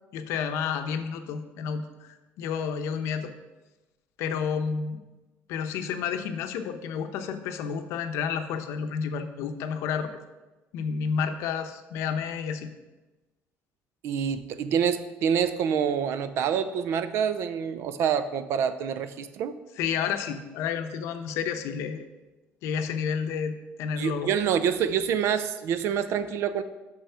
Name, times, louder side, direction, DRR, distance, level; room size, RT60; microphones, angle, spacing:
voice 1, 0.1-3.3 4.2-5.0 5.5-10.1 10.7-12.7 19.8-22.1 22.6-24.3, left 6 dB, 80° left, 8 dB, 0.7 m, -30 dB
voice 2, 14.0-19.6 24.0-26.6, right 8 dB, 65° right, 12 dB, 0.5 m, -26 dB
6.3 x 5.7 x 5.6 m, 1.1 s
cardioid pair, 130°, 5 cm